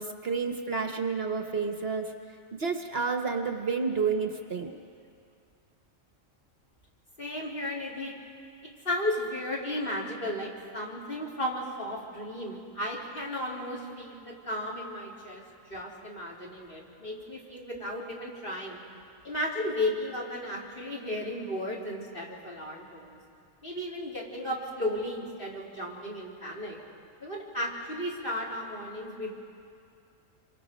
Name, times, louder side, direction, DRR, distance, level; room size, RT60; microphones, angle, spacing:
voice 1, 0.0-2.1 2.6-4.7, right 5 dB, 50° right, 5 dB, 1.2 m, -30 dB
voice 2, 7.2-8.2 8.6-15.4 15.7-18.8 19.2-23.2 23.6-26.8 27.2-29.4, left 1 dB, 40° left, -4 dB, 3.8 m, -34 dB
27.5 x 24.0 x 5.2 m, 2.3 s
omnidirectional pair, 1.4 m